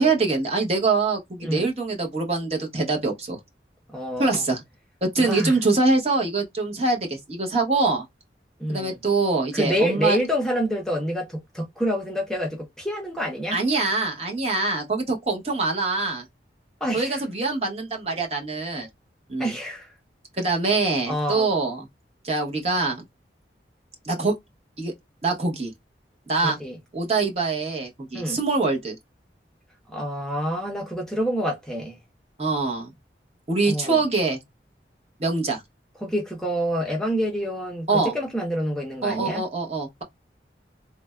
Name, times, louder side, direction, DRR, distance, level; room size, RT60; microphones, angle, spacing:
voice 1, 0.0-3.4 4.2-4.6 5.0-8.0 8.7-10.2 13.5-16.2 16.9-18.9 19.3-19.5 20.4-21.9 22.2-23.0 24.0-24.3 24.8-24.9 25.2-25.7 26.3-26.6 26.9-28.9 32.4-32.9 33.5-34.4 35.2-35.6 37.9-38.1 39.0-40.0, right 3 dB, 35° right, 0.9 m, -24 dB
voice 2, 3.9-4.4 5.2-5.6 8.6-9.0 9.5-13.6 16.8-17.2 19.4-19.9 21.1-21.5 26.4-26.8 28.1-28.4 29.9-32.0 33.7-34.0 36.0-39.4, equal, 5° left, 0.6 m, -27 dB
3.3 x 2.0 x 2.3 m
head